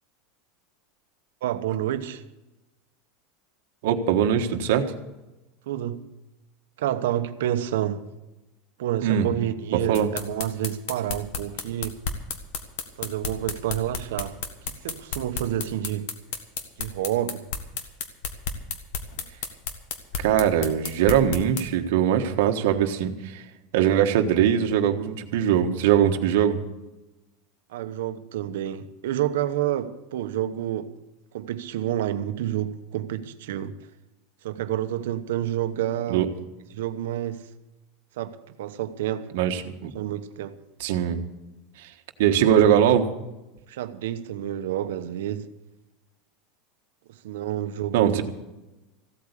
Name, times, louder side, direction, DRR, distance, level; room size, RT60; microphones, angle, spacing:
voice 1, 1.4-2.2 5.7-6.1 6.8-8.1 8.8-12.0 13.0-14.4 14.8-16.1 16.8-17.5 27.7-30.9 31.3-33.8 34.4-36.3 36.7-37.5 38.2-39.3 39.9-40.6 43.7-45.5 47.1-48.2, right 12 dB, 90° right, 1.0 m, -29 dB
voice 2, 3.8-5.0 9.0-9.3 9.9-10.1 20.2-23.4 23.7-26.6 36.1-36.3 39.3-39.9 40.8-41.2 41.8-41.9 42.2-43.1 47.9-48.2, right 9 dB, 65° right, 1.4 m, -21 dB
sound 1, 9.9-21.6, left 6 dB, 55° left, 1.6 m, -31 dB
15.5 x 8.6 x 8.3 m
supercardioid pair, 175°, 0 cm